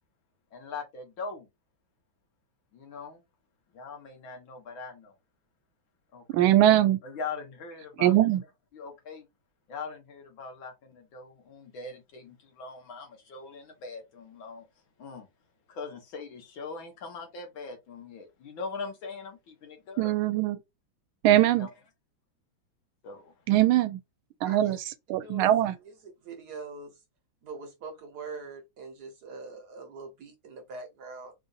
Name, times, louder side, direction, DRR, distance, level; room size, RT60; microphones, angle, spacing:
voice 1, 0.5-1.5 2.7-3.2 3.7-5.2 6.1-6.6 7.0-8.1 8.7-9.3 9.7-14.6 15.0-15.3 15.7-20.1 21.3-21.7 23.0-23.4 24.6-24.8, left 4 dB, 70° left, 2.0 m, -41 dB
voice 2, 6.3-7.0 8.0-8.4 20.0-20.6 21.2-21.7 23.5-24.0 24.4-24.8 25.1-25.7, right 13 dB, 85° right, 1.4 m, -21 dB
voice 3, 24.4-24.8 25.2-25.5 25.8-27.0 27.4-31.3, right 4 dB, 55° right, 1.4 m, -43 dB
4.4 x 2.5 x 2.5 m
omnidirectional pair, 2.2 m